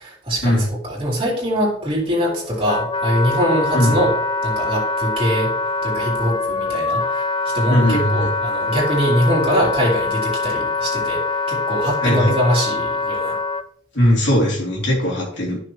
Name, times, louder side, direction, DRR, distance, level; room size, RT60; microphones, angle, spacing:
voice 1, 0.0-4.1 4.4-5.5 5.8-7.2 7.5-13.4, equal, 30° right, -4 dB, 3.9 m, -22 dB
Wind instrument woodwind instrument, 2.0-13.6, left 3 dB, 25° left, 0.4 m, -24 dB
voice 2, 7.7-8.3 12.0-12.3 13.9-15.6, equal, 60° left, -3 dB, 3.6 m, -18 dB
14.0 x 6.4 x 3.2 m, 0.62 s
head